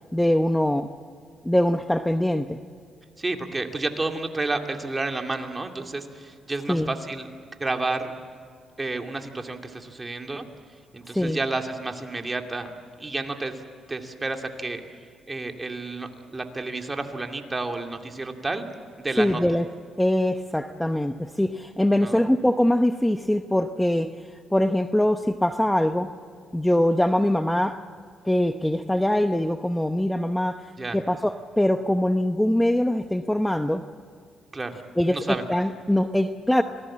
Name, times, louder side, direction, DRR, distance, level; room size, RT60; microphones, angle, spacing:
voice 1, 0.1-0.9 1.4-2.6 6.7-6.9 11.1-11.4 19.2-19.7 20.0-24.1 24.5-26.1 26.5-27.8 28.2-33.8 35.0-36.6, left 1 dB, 5° left, 8 dB, 0.9 m, -23 dB
voice 2, 3.2-7.3 7.6-8.1 8.8-10.4 10.9-12.7 13.0-13.6 13.9-14.8 15.3-18.6 19.0-19.4 22.0-22.2 30.8-31.0 34.5-35.4, right 3 dB, 20° right, 4 dB, 2.6 m, -30 dB
27.5 x 19.0 x 7.5 m, 2.2 s
cardioid pair, 90°, 0 cm